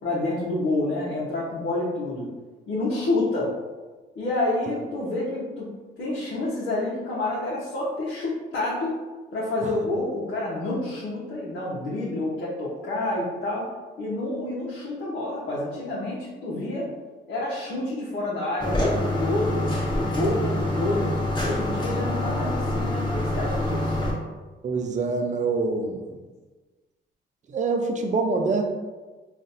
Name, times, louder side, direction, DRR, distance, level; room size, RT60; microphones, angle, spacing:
voice 1, 0.0-2.3 2.7-3.5 4.1-5.7 6.0-8.9 9.3-13.7 14.0-16.9 17.3-19.6 19.9-21.1 21.4-24.0, left 2 dB, 65° left, -7 dB, 1.0 m, -28 dB
sound 1, 18.6-24.1, left 1 dB, 20° left, 1.1 m, -26 dB
voice 2, 24.6-26.2 27.5-28.6, right 3 dB, 40° right, 4 dB, 0.5 m, -25 dB
3.9 x 2.5 x 2.6 m, 1.3 s
cardioid pair, 90°, 20 cm